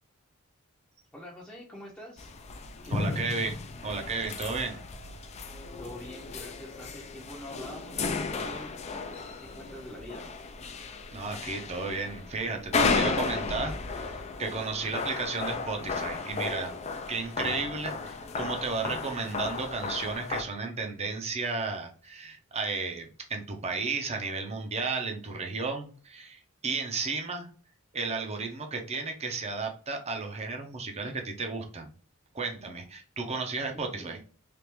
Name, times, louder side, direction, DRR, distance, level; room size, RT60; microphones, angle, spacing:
voice 1, 1.1-2.3 2.8-3.4 5.8-8.8 9.1-9.2 9.5-10.3 14.7-14.9 33.7-34.2, equal, 5° left, -6 dB, 0.7 m, -45 dB
sound 1, 2.2-20.4, left 4 dB, 30° left, 0.4 m, -34 dB
voice 2, 2.9-3.5 3.8-4.8 11.1-16.7 17.1-27.5 27.9-31.9 32.3-34.2, right 4 dB, 30° right, 3 dB, 0.7 m, -33 dB
3.4 x 2.5 x 3.0 m, 0.40 s
head